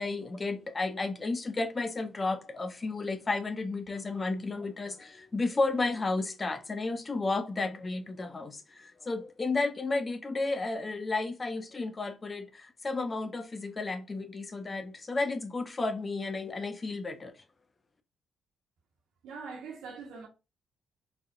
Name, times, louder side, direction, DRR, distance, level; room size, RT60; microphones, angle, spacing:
voice 1, 0.0-17.3, left 3 dB, 30° left, 0.7 m, -32 dB
voice 2, 19.2-20.3, right 5 dB, 85° right, 1.3 m, -42 dB
4.4 x 3.5 x 2.5 m
cardioid pair, 90°, 0 cm